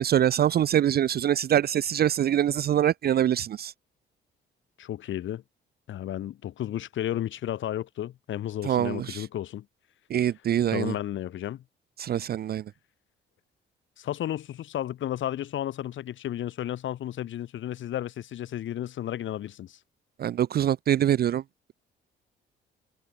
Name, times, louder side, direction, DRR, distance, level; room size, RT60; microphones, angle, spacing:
voice 1, 0.0-3.7 8.6-9.3 10.1-10.9 12.0-12.6 20.2-21.4, right 10 dB, 50° right, 0.5 m, -24 dB
voice 2, 4.8-5.4 5.9-9.6 10.7-11.6 14.0-19.8, left 12 dB, 75° left, 5.1 m, -33 dB
cardioid pair, 90°, 20 cm